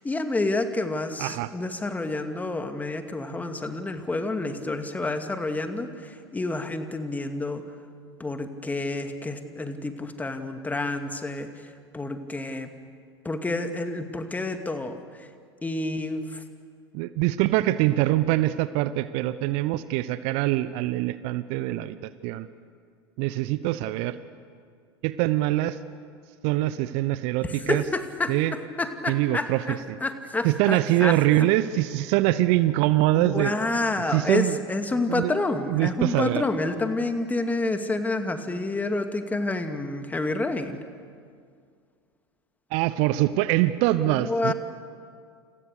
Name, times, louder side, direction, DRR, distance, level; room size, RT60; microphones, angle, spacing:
voice 1, 0.0-7.6 8.2-11.5 11.9-12.7 13.2-15.0 15.6-16.4 27.4-28.3 28.8-31.1 33.2-40.8 44.0-44.5, left 2 dB, 10° left, 7 dB, 2.3 m, -29 dB
voice 2, 1.2-1.5 16.9-22.5 23.2-24.2 25.0-25.8 26.4-27.8 28.3-28.5 29.1-30.0 30.4-33.5 34.1-34.6 35.1-35.3 35.7-36.4 42.7-44.5, right 16 dB, 50° right, 15 dB, 0.9 m, -24 dB
29.0 x 28.5 x 6.7 m, 2.1 s
figure-of-eight pair, 80°, 13 cm